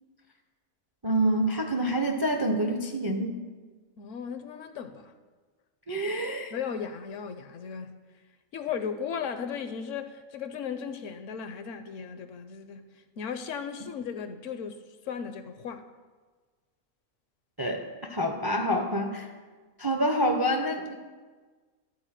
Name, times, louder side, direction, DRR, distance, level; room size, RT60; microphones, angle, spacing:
voice 1, 1.0-3.4 5.9-6.5 17.6-17.8 18.1-19.3 19.8-20.9, right 1 dB, 35° right, 0.4 m, -27 dB
voice 2, 4.0-5.1 6.5-7.9 8.5-12.8 13.2-14.8 15.0-15.8, left 7 dB, 65° left, 0.9 m, -36 dB
12.5 x 4.2 x 7.3 m
omnidirectional pair, 1.5 m